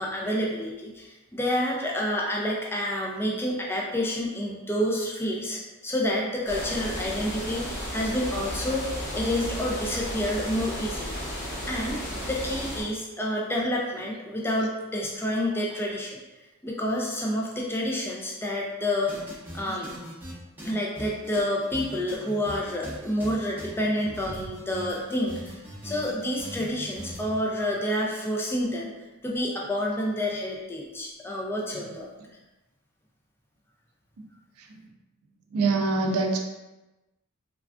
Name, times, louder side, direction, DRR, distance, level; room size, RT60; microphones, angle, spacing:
voice 1, 0.0-11.2 11.7-16.2 16.6-19.1 19.5-19.9 20.6-25.6 25.8-28.9 29.2-32.1, left 1 dB, 10° left, -2 dB, 0.3 m, -29 dB
sound 1, 6.5-12.8, equal, 50° left, 0.8 m, -34 dB
sound 2, 19.1-20.3 20.6-27.4, equal, 10° right, 0.8 m, -40 dB
voice 2, 35.5-36.4, right 3 dB, 75° right, 3 dB, 0.4 m, -25 dB
3.3 x 2.3 x 2.4 m, 1.1 s
head